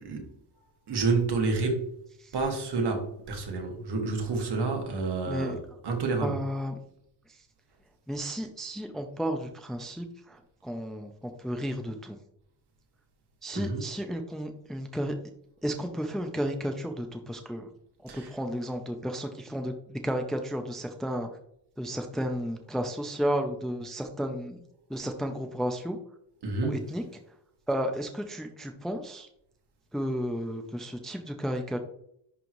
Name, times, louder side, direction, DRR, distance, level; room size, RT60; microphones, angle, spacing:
voice 1, 0.9-1.9 2.3-5.6 5.8-6.4 13.5-13.8 18.1-18.3 26.4-26.7, right 3 dB, 60° right, 2 dB, 1.8 m, -29 dB
voice 2, 6.2-6.8 8.1-12.2 13.4-15.1 15.6-17.7 18.1-21.3 21.8-24.6 24.9-26.0 26.6-27.0 27.7-29.3 29.9-31.8, equal, ahead, 5 dB, 0.5 m, -33 dB
10.5 x 3.7 x 3.1 m, 0.70 s
wide cardioid pair, 150°, 44 cm